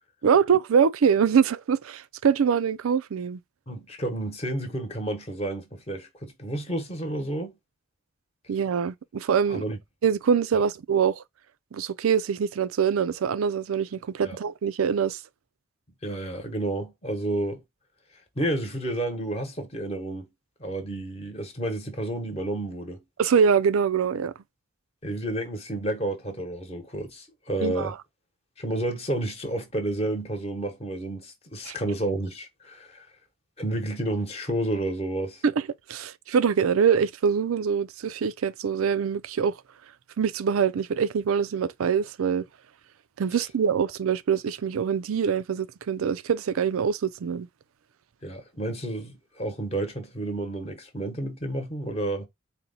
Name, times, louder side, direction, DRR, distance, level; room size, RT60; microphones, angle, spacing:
voice 1, 0.2-3.4 8.5-9.6 10.0-11.2 11.7-15.2 23.2-24.3 27.6-27.9 31.6-31.8 35.4-35.5 35.9-39.6 40.2-42.5 43.2-47.5, right 7 dB, 90° right, 0.4 m, -24 dB
voice 2, 3.7-7.5 9.5-9.8 14.2-14.4 16.0-17.6 18.4-20.3 20.6-23.0 25.0-28.0 28.6-33.1 33.6-35.4 48.2-52.3, right 1 dB, 30° left, 1.0 m, -30 dB
4.2 x 2.1 x 3.9 m
head